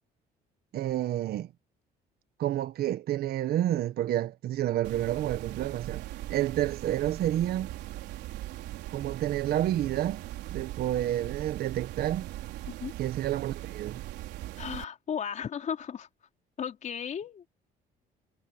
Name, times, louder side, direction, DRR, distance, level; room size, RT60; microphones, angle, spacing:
voice 1, 0.7-1.5 2.4-6.0 6.3-7.7 8.9-10.2 10.5-12.2 13.0-14.0, right 12 dB, 65° right, 1.5 m, -29 dB
sound 1, 4.8-14.8, right 15 dB, 85° right, 4.2 m, -40 dB
voice 2, 14.6-16.1 16.6-17.5, left 8 dB, 45° left, 4.7 m, -35 dB
cardioid pair, 110°, 17 cm